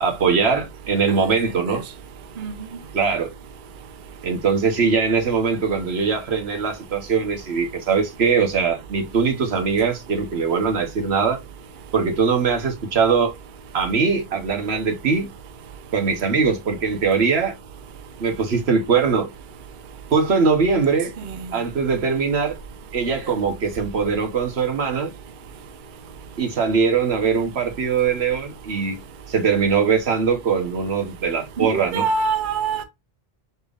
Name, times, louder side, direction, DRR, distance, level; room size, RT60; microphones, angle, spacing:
voice 1, 0.0-1.8 2.9-3.3 4.2-11.4 11.9-13.3 13.7-15.3 15.9-17.5 18.2-19.3 20.1-21.1 21.5-22.6 22.9-25.1 26.4-29.0 29.3-32.1, right 5 dB, 90° right, 1.3 m, -21 dB
voice 2, 31.6-32.8, right 4 dB, 55° right, 0.8 m, -24 dB
4.4 x 3.4 x 2.4 m
omnidirectional pair, 1.0 m